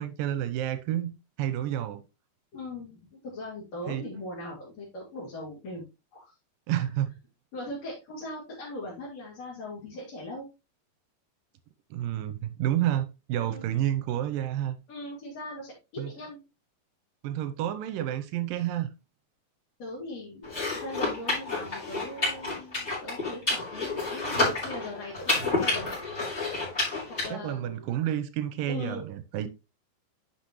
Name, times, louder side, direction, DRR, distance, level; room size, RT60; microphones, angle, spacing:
voice 1, 0.0-2.0 3.9-4.0 6.7-7.1 11.9-14.8 16.0-16.1 17.2-18.9 27.3-29.5, right 12 dB, 80° right, 2.3 m, -30 dB
voice 2, 2.5-5.9 6.1-6.3 6.7-6.8 7.5-10.5 13.4-13.7 14.9-16.4 19.8-25.9 27.2-27.9 28.7-29.1, left 1 dB, 45° left, 4.1 m, -40 dB
sound 1, 20.4-27.3, left 2 dB, 15° left, 4.3 m, -30 dB
10.5 x 5.7 x 3.1 m
omnidirectional pair, 4.3 m